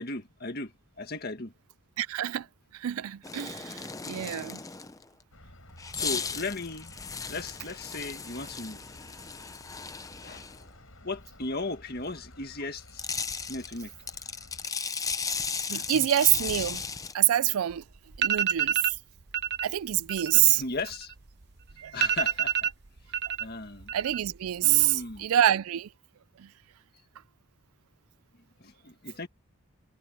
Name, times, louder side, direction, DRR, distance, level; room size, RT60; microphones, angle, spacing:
voice 1, 0.0-1.5 5.9-6.9 7.3-8.8 10.2-10.5 11.0-13.0 13.5-13.9 20.3-21.1 21.9-22.7 23.4-23.9 24.6-25.3 28.6-29.3, left 3 dB, 45° left, 1.9 m, -36 dB
voice 2, 2.0-2.5 2.7-4.6 15.7-16.8 17.1-17.8 18.2-19.0 19.6-20.6 21.8-22.0 23.9-25.9 26.4-26.5, right 12 dB, 80° right, 0.4 m, -26 dB
sound 1, 3.2-5.0 5.8-10.6 12.7-17.1, left 5 dB, 15° left, 0.6 m, -36 dB
sound 2, 5.3-14.7, left 1 dB, 65° left, 7.9 m, -53 dB
sound 3, 17.7-17.8 18.1-19.0 19.3-19.7 20.0-21.4 21.7-21.8 22.0-23.4 23.7-24.3 24.6-25.2, right 9 dB, 50° right, 0.8 m, -28 dB
head